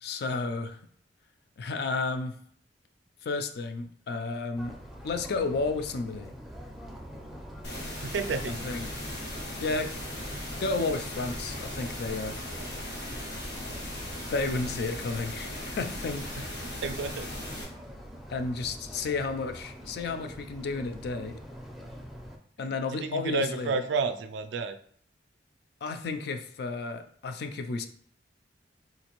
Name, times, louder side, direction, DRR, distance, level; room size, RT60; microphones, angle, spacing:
voice 1, 0.0-0.8 1.6-2.4 3.2-4.8 5.0-6.3 8.6-8.9 9.6-9.9 10.6-12.3 14.3-16.7 18.3-21.4 22.6-23.8 25.8-27.9, left 3 dB, 65° left, 8 dB, 0.4 m, -32 dB
sound 1, 4.5-22.4, equal, ahead, 0.4 m, -45 dB
sound 2, 7.6-17.6, left 1 dB, 90° left, 1.1 m, -38 dB
voice 2, 8.0-8.6 13.1-13.2 16.8-17.3 22.6-24.8, right 4 dB, 80° right, 9 dB, 0.3 m, -31 dB
3.9 x 2.5 x 2.9 m, 0.62 s
head